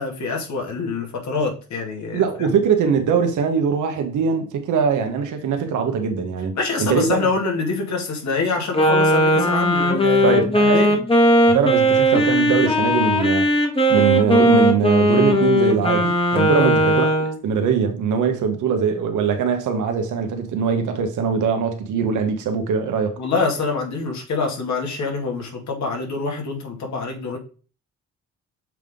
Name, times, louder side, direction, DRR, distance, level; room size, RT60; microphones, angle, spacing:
voice 1, 0.0-2.6 6.6-11.0 16.6-16.7 23.2-27.4, left 4 dB, 65° left, 2.2 m, -25 dB
voice 2, 2.1-6.5 6.8-7.3 10.2-10.8 11.5-13.5 13.9-23.1, right 6 dB, 80° right, 1.2 m, -21 dB
Wind instrument woodwind instrument, 8.7-17.4, equal, 20° left, 1.5 m, -18 dB
7.3 x 3.6 x 3.7 m
cardioid pair, 90°, 30 cm